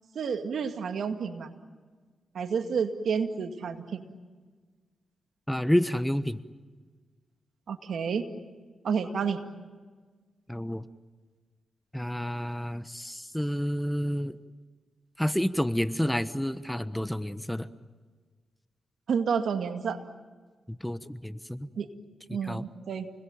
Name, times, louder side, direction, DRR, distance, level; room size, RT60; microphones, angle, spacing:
voice 1, 0.1-1.5 2.3-4.1 7.7-8.3 8.8-9.4 19.1-20.0 21.8-21.9 22.3-23.1, right 6 dB, 75° right, 7 dB, 2.1 m, -30 dB
voice 2, 5.5-6.4 10.5-10.9 11.9-14.4 15.2-17.7 20.7-21.7 22.4-22.6, equal, 5° left, 13 dB, 1.2 m, -29 dB
29.5 x 21.5 x 9.0 m, 1.5 s
supercardioid pair, 50°, 0 cm